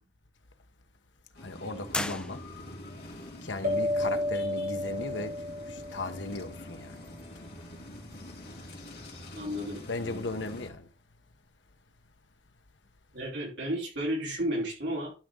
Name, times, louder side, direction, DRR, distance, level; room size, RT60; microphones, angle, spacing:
sound 1, 1.3-10.7, left 1 dB, 55° left, 3.3 m, -45 dB
voice 1, 1.4-2.4 3.4-5.3 5.7-7.0 9.9-10.9, left 2 dB, 75° left, 1.1 m, -36 dB
sound 2, 1.9-2.9, left 2 dB, 5° left, 0.5 m, -35 dB
sound 3, 3.6-6.6, left 1 dB, 50° right, 2.0 m, -32 dB
voice 2, 9.3-10.2 13.1-15.1, equal, 70° right, 4.0 m, -33 dB
12.0 x 5.2 x 3.8 m
head